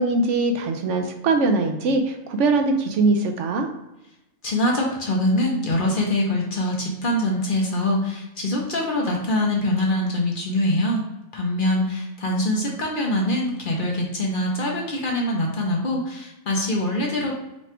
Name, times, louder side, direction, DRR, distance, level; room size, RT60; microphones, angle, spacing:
voice 1, 0.0-3.7, right 3 dB, 70° right, 5 dB, 0.9 m, -21 dB
voice 2, 4.4-11.0 11.3-17.3, left 1 dB, 50° left, -1 dB, 0.8 m, -24 dB
4.1 x 2.3 x 4.3 m, 0.94 s
omnidirectional pair, 1.3 m